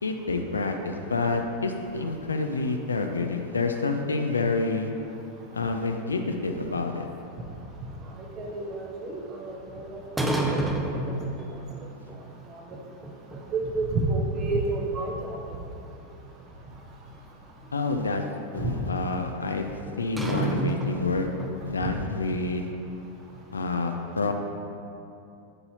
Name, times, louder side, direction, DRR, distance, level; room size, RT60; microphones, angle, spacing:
voice 1, 0.0-4.9 5.5-7.0 17.7-18.2 18.5-21.3 21.6-22.7 23.5-24.3, left 3 dB, 75° left, 4 dB, 0.5 m, -28 dB
sound 1, 6.3-7.6 10.2-11.8 12.1-12.2 12.7-13.7 14.0-14.1 14.6-14.7 15.1-16.5 18.0-18.1 19.9-21.6, right 2 dB, 5° right, 0.7 m, -30 dB
voice 2, 8.1-10.0 10.4-10.7 11.0-11.9 12.1-12.2 12.5-12.8 13.5-15.6 18.6-18.8 21.8-21.9, right 2 dB, 35° right, 0 dB, 0.9 m, -31 dB
12.0 x 5.5 x 2.9 m, 2.7 s
figure-of-eight pair, 90°, 0 cm